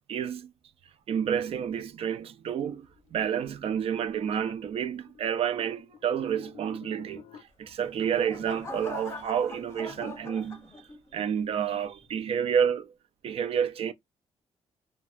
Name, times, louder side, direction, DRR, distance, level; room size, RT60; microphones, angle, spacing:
voice 1, 0.1-0.5 1.1-10.7 11.1-12.9 13.2-13.9, right 8 dB, 60° right, 0.4 m, -29 dB
sound 1, 2.7-7.4, left 7 dB, 70° left, 0.4 m, -52 dB
sound 2, 7.6-11.2 11.7-12.1, left 3 dB, 25° left, 0.7 m, -43 dB
2.7 x 2.2 x 2.4 m
cardioid pair, 125°, 11 cm